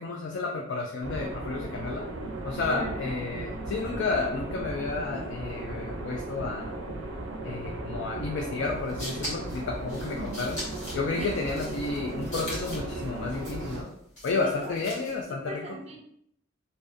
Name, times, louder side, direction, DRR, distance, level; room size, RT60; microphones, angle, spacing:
voice 1, 0.0-2.1 2.4-6.7 7.4-10.6 10.9-13.9 14.2-15.8, left 3 dB, 60° left, 0 dB, 0.3 m, -31 dB
sound 1, 1.0-13.8, right 2 dB, 85° right, 0.5 m, -36 dB
voice 2, 2.6-3.2 10.1-10.4 11.2-11.4 14.3-14.8 15.3-16.0, right 1 dB, 30° right, 1 dB, 0.4 m, -38 dB
sound 2, 8.7-15.3, equal, 40° left, 1.1 m, -41 dB
2.5 x 2.1 x 2.4 m, 0.71 s
head